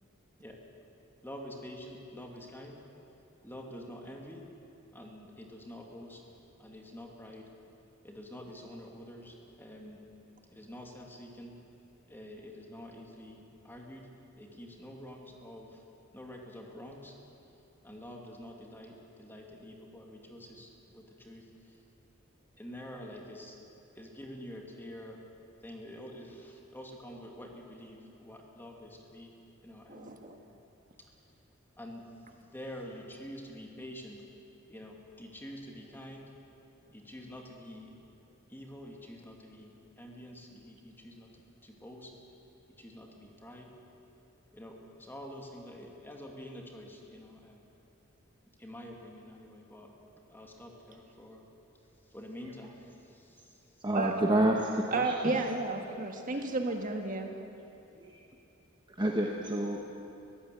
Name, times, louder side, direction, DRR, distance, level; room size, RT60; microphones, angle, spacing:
voice 1, 1.2-2.8 3.4-4.4 4.9-6.2 6.6-7.4 8.0-10.0 10.5-11.5 12.1-14.1 14.4-15.8 16.1-17.1 17.8-21.4 22.6-23.6 24.0-25.2 25.6-29.3 29.6-30.2 31.8-32.0 32.4-34.2 34.7-36.3 36.9-38.0 38.5-41.3 41.6-42.1 42.8-43.7 44.5-47.6 48.6-49.9 50.3-51.4 52.1-53.6 56.3-56.4, left 1 dB, 10° left, 0 dB, 2.5 m, -47 dB
voice 2, 29.9-30.4 53.9-54.1 54.9-57.3, right 3 dB, 40° right, 4 dB, 1.6 m, -32 dB
voice 3, 53.8-55.4 58.0-58.2 58.9-59.9, right 1 dB, 20° right, 0 dB, 1.2 m, -29 dB
22.0 x 16.0 x 8.3 m, 2.8 s
head